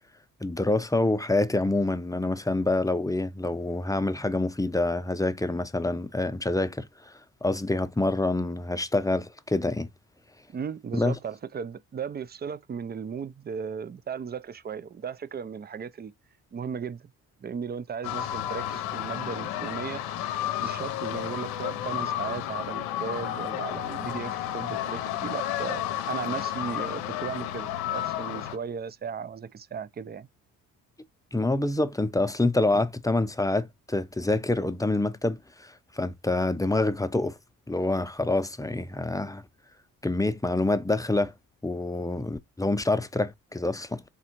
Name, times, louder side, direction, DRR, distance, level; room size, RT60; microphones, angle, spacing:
voice 1, 0.4-7.1 7.4-9.9 10.9-11.1 31.3-37.4 37.7-39.4 40.0-41.3 41.6-44.0, left 2 dB, 10° left, 0.7 m, -26 dB
voice 2, 10.5-16.1 16.5-17.1 17.4-20.0 20.6-30.3, right 6 dB, 25° right, 0.5 m, -36 dB
sound 1, 18.0-28.6, left 12 dB, 80° left, 0.7 m, -32 dB
4.1 x 3.7 x 2.9 m
hypercardioid pair, 50°, 37 cm